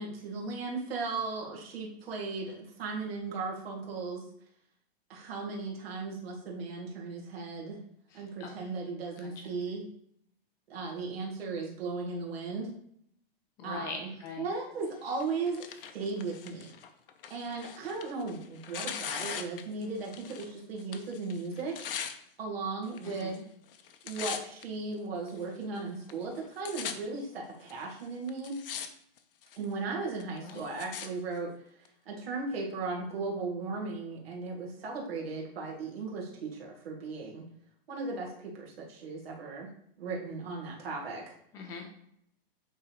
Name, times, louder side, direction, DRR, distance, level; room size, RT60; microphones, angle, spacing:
voice 1, 0.0-4.3 5.1-7.8 8.1-9.8 10.7-12.7 13.6-14.1 14.4-15.6 15.9-16.7 17.3-21.8 22.4-23.4 24.0-28.6 29.6-31.5 32.1-37.4 37.9-39.7 40.0-41.3, right 4 dB, 70° right, -2 dB, 2.2 m, -36 dB
voice 2, 8.1-8.5 9.2-9.3 13.6-14.5 23.0-23.4 30.4-30.6 41.5-41.9, left 4 dB, 10° left, 2 dB, 0.4 m, -42 dB
Tearing, 15.1-20.5 20.8-22.1 22.9-23.4 23.7-24.6 25.3-25.4 26.1-26.2 26.4-26.9 27.7-27.8 28.3-28.9 29.2-29.6 30.2-31.1 31.9-32.0, left 8 dB, 65° left, 0.8 m, -40 dB
8.6 x 3.7 x 3.0 m, 0.70 s
hypercardioid pair, 165°, 30 cm